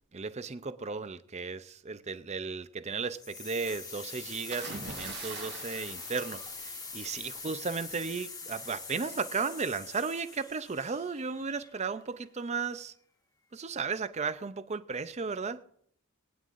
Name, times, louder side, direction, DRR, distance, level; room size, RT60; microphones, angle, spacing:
voice 1, 0.1-12.9 13.5-15.6, right 5 dB, 30° right, 0.5 m, -35 dB
sound 1, 3.1-12.0, left 4 dB, 15° left, 1.4 m, -43 dB
sound 2, 4.5-7.3 8.5-8.8, right 4 dB, 50° right, 1.4 m, -43 dB
23.0 x 9.2 x 2.5 m
head